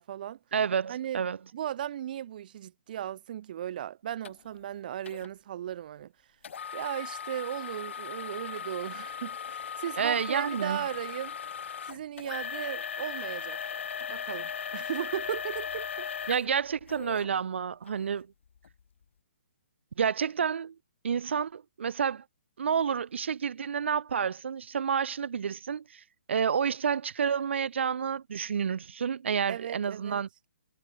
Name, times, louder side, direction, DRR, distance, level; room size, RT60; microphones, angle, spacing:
voice 1, 0.0-0.4 0.9-1.2 1.5-6.1 6.7-11.3 11.8-13.7 14.1-16.1 29.5-30.2, right 11 dB, 45° right, 1.1 m, -36 dB
voice 2, 0.5-1.4 10.0-10.8 16.3-18.3 20.0-20.7 21.0-22.2 22.6-26.0 26.3-30.3, right 7 dB, 70° right, 1.0 m, -29 dB
sound 1, 4.2-4.3 5.1-5.3 6.4-17.3 17.9-18.0 18.6-18.7, left 7 dB, 75° left, 0.3 m, -38 dB
hypercardioid pair, 160°, 7 cm